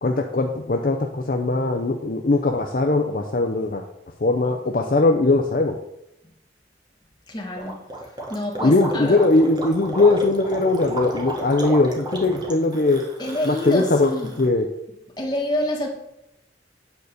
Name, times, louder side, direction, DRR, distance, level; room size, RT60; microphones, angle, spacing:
voice 1, 0.0-3.8 4.2-5.8 8.6-13.0 13.4-14.7, left 2 dB, 50° left, 4 dB, 0.6 m, -20 dB
voice 2, 7.3-7.8 8.3-9.2 13.2-14.3 15.2-15.9, left 1 dB, 25° left, 0 dB, 1.6 m, -27 dB
Gurgling, 7.6-14.5, right 1 dB, 25° right, 1.4 m, -32 dB
9.2 x 4.1 x 6.6 m, 0.83 s
head